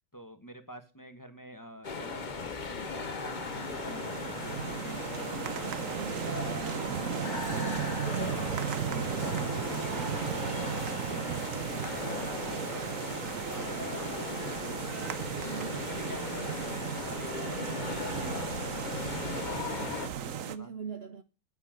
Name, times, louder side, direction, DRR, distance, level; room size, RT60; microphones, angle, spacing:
voice 1, 0.1-6.0 6.3-6.6 7.2-15.0 15.5-18.5 18.9-20.7, equal, 10° left, 1.3 m, -48 dB
sound 1, 1.8-20.1, left 4 dB, 35° left, 0.8 m, -38 dB
sound 2, 2.6-20.5, right 9 dB, 55° right, 0.9 m, -36 dB
voice 2, 5.9-6.4 6.9-7.5 15.4-15.9 20.4-21.2, right 6 dB, 85° right, 0.5 m, -42 dB
9.8 x 9.2 x 6.5 m
omnidirectional pair, 2.2 m